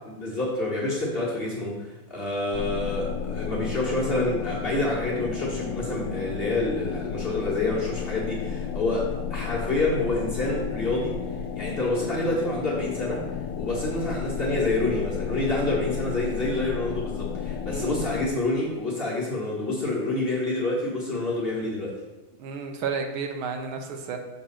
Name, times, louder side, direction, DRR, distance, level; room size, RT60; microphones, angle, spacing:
voice 1, 0.2-11.2 11.5-13.2 13.6-21.9, left 2 dB, 30° left, -5 dB, 1.4 m, -27 dB
sound 1, 2.5-18.3, left 7 dB, 85° left, 1.5 m, -33 dB
voice 2, 17.7-18.1 22.4-24.2, right 5 dB, 75° right, 5 dB, 1.6 m, -32 dB
6.7 x 3.9 x 5.6 m, 1.1 s
omnidirectional pair, 2.3 m